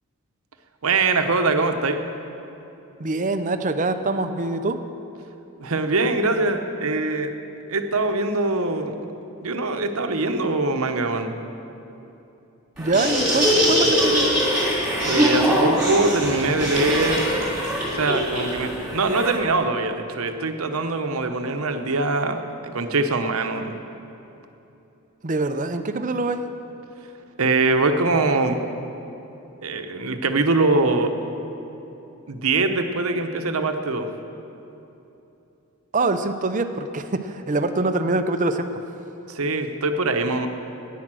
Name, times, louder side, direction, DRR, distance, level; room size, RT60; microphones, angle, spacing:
voice 1, 0.8-2.0 5.6-7.3 7.7-8.9 9.4-11.4 15.0-17.3 17.9-23.7 27.4-28.6 29.6-31.1 32.3-34.1 39.3-40.5, right 3 dB, 70° right, 6 dB, 0.9 m, -23 dB
voice 2, 3.0-4.8 12.8-14.4 25.2-26.4 35.9-38.7, right 2 dB, 35° right, 9 dB, 0.6 m, -24 dB
Laughter, 12.8-19.3, equal, 5° right, 3.4 m, -22 dB
11.0 x 9.4 x 7.6 m, 2.9 s
head